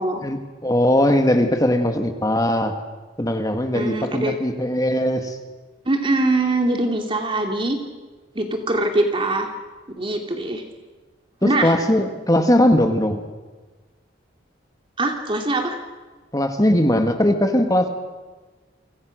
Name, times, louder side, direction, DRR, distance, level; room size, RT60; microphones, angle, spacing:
voice 1, 0.2-2.7 3.2-5.4 11.4-13.2 16.3-17.9, left 1 dB, 20° left, 5 dB, 2.0 m, -19 dB
voice 2, 3.7-4.3 5.9-7.8 8.3-9.5 10.0-10.6 11.4-11.7 15.0-15.8, right 2 dB, 30° right, 3 dB, 2.5 m, -22 dB
30.0 x 26.0 x 6.5 m, 1.3 s
head